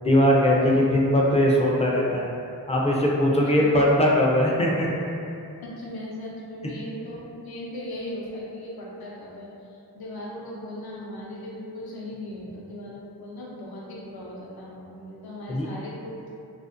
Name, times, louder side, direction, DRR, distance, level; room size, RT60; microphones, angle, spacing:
voice 1, 0.0-2.3 2.7-4.9 6.6-6.7 15.5-15.7, equal, 15° left, -4 dB, 0.3 m, -20 dB
voice 2, 5.6-16.2, left 1 dB, 65° left, -5 dB, 0.6 m, -38 dB
2.5 x 2.0 x 2.4 m, 2.6 s
cardioid pair, 60°, 40 cm